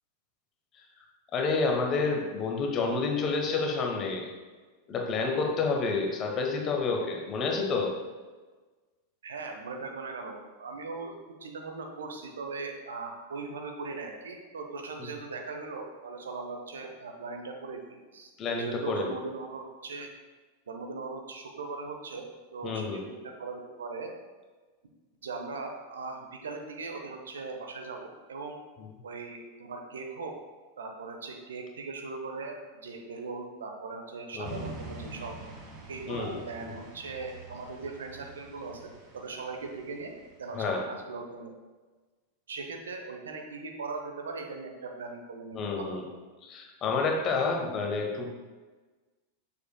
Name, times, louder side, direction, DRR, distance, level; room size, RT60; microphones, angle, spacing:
voice 1, 1.3-4.3 4.9-7.9 15.0-15.1 18.4-19.1 22.6-23.0 34.3-34.6 36.1-36.4 36.6-36.7 40.5-40.8 45.5-46.0 46.4-48.3, left 4 dB, 30° left, 1 dB, 1.1 m, -29 dB
voice 2, 9.2-20.1 20.7-22.3 22.5-24.1 25.2-28.6 29.0-30.4 30.8-35.4 35.9-41.5 42.5-46.0, right 3 dB, 65° right, 3 dB, 0.7 m, -39 dB
sound 1, 34.4-40.6, right 3 dB, 35° right, 1.5 m, -46 dB
7.1 x 6.5 x 2.2 m, 1.3 s
figure-of-eight pair, 90°, 0 cm